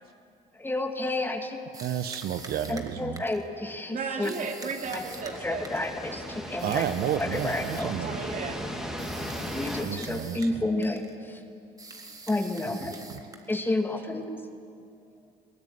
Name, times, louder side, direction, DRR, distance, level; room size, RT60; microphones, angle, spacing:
voice 1, 0.6-1.6 2.7-4.3 4.9-5.0 5.4-6.9 7.2-7.9 9.5-11.4 12.3-13.0 13.5-14.3, left 2 dB, 10° left, 5 dB, 2.0 m, -30 dB
sound 1, 1.7-3.5 4.2-6.0 6.6-8.0 9.0-10.6 10.8-11.2 11.8-13.7, right 3 dB, 20° right, 2.1 m, -45 dB
voice 2, 1.8-3.2 6.6-8.2 9.8-10.5 12.9-13.0, right 10 dB, 65° right, 9 dB, 1.0 m, -31 dB
voice 3, 3.9-5.7 8.0-8.6, right 5 dB, 50° right, 3 dB, 3.1 m, -34 dB
sound 2, 4.8-9.8, equal, 5° right, 3.4 m, -37 dB
22.0 x 18.5 x 9.6 m, 2.4 s
cardioid pair, 110°, 17 cm